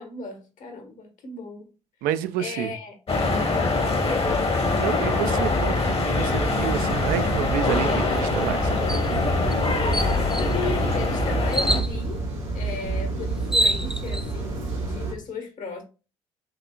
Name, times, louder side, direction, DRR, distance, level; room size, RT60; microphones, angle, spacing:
voice 1, 0.0-1.7 2.4-3.0 4.0-4.8 8.5-9.6 10.4-12.2 12.5-15.8, left 3 dB, 55° left, 1.3 m, -36 dB
voice 2, 2.0-2.7 4.8-9.2, right 10 dB, 70° right, 0.5 m, -29 dB
sound 1, 3.1-11.8, left 3 dB, 40° left, 1.1 m, -24 dB
sound 2, 6.1-15.1, right 3 dB, 90° right, 1.5 m, -30 dB
sound 3, 8.9-9.1 9.5-9.6 9.9-10.5 11.5-11.9 13.0-13.1 13.4-14.2, right 1 dB, 5° right, 0.6 m, -25 dB
5.8 x 2.8 x 2.4 m
hypercardioid pair, 50°, 16 cm